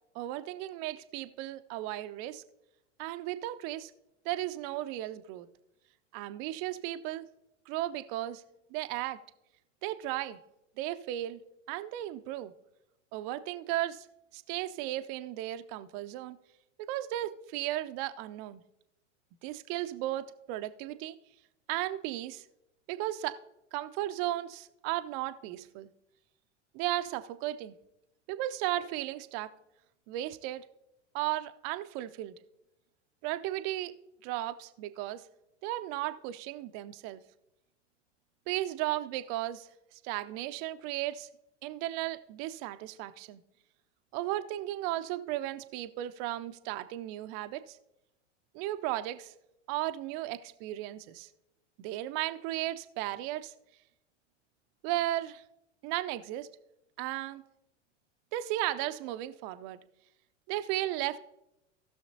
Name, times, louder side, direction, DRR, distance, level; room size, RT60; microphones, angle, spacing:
voice 1, 0.1-2.4 3.0-3.9 4.2-5.5 6.1-7.3 7.7-8.4 8.7-9.2 9.8-10.4 10.8-11.4 11.7-12.5 13.1-14.1 14.3-16.4 16.8-18.6 19.4-21.1 21.7-22.4 22.9-23.4 23.7-25.9 26.7-27.7 28.3-29.5 30.1-30.6 31.1-32.4 33.2-34.0 34.2-35.2 35.6-37.2 38.5-41.3 41.6-43.4 44.1-47.8 48.5-49.3 49.7-51.3 51.8-53.5 54.8-55.4 55.8-56.5 57.0-57.4 58.3-59.8 60.5-61.2, right 14 dB, 30° right, 10 dB, 0.4 m, -35 dB
17.5 x 6.3 x 2.7 m, 0.89 s
figure-of-eight pair, 90°, 37 cm